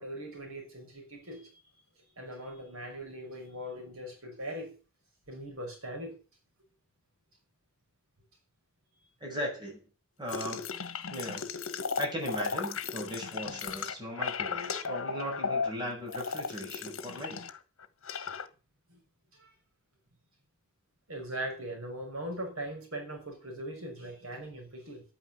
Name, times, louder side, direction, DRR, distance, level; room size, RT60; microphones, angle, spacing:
voice 1, 0.0-1.5 2.2-4.8 5.3-6.1 18.9-19.0 19.3-19.5 21.1-25.0, right 1 dB, 75° right, 6.1 m, -40 dB
voice 2, 9.2-9.8 10.2-10.6 11.1-11.5 12.0-17.4, equal, 20° right, 7.0 m, -37 dB
sound 1, 10.3-17.6 17.8-18.5, left 5 dB, 65° left, 1.4 m, -35 dB
11.0 x 9.8 x 8.4 m
head